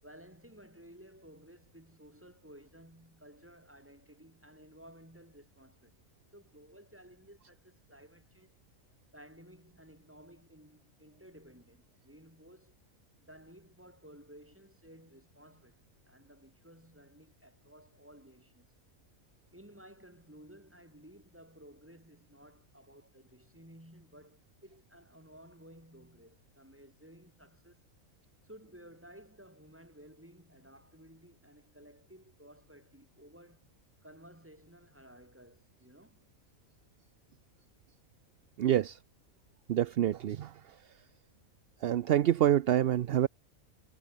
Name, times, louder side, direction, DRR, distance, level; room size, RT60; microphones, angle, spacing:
voice 1, 0.0-6.0 6.3-8.6 9.1-12.8 13.2-18.7 19.5-27.8 28.4-33.7 34.0-36.2, equal, 10° right, 4.7 m, -56 dB
voice 2, 38.6-39.0 39.7-40.5 41.8-43.3, right 11 dB, 60° right, 0.7 m, -26 dB
omnidirectional pair, 1.4 m